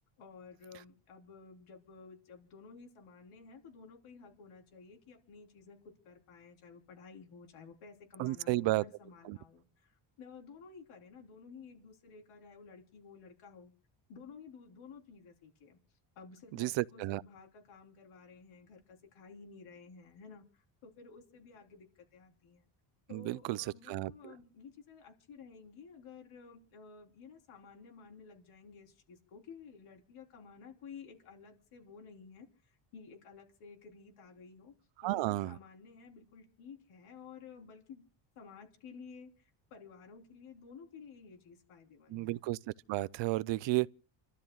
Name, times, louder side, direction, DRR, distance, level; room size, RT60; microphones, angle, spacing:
voice 1, 0.2-13.7 14.1-15.8 16.2-22.7 23.1-34.7 35.0-38.0 38.4-42.4, left 5 dB, 75° left, 3.8 m, -53 dB
voice 2, 8.2-8.8 9.3-9.4 16.5-17.2 23.1-24.3 35.0-35.5 42.1-42.6 42.9-43.9, right 18 dB, 60° right, 0.5 m, -32 dB
29.5 x 13.0 x 2.4 m
cardioid pair, 140°, 50 cm